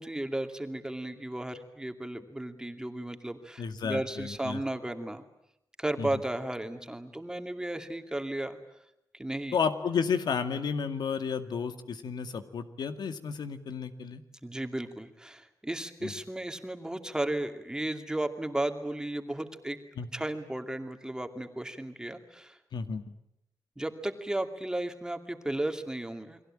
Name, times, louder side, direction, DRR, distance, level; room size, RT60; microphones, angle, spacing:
voice 1, 0.0-5.2 5.8-8.6 9.1-9.6 14.4-19.8 20.1-22.6 23.8-26.4, right 1 dB, 10° right, 6 dB, 2.5 m, -34 dB
voice 2, 3.6-4.6 6.0-6.1 9.5-14.2 16.0-16.1 20.0-20.1 22.7-23.0, left 6 dB, 90° left, 8 dB, 2.1 m, -32 dB
30.0 x 22.5 x 8.9 m, 0.82 s
wide cardioid pair, 120°, 7 cm